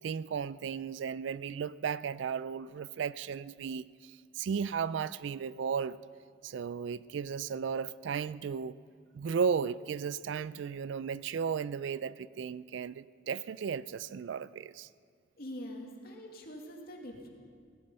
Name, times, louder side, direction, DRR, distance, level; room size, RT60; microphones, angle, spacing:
voice 1, 0.0-6.0 6.4-8.8 9.1-14.9, right 6 dB, 65° right, 0.3 m, -35 dB
voice 2, 15.4-17.3, equal, 55° left, 2.2 m, -44 dB
17.5 x 13.0 x 5.5 m
head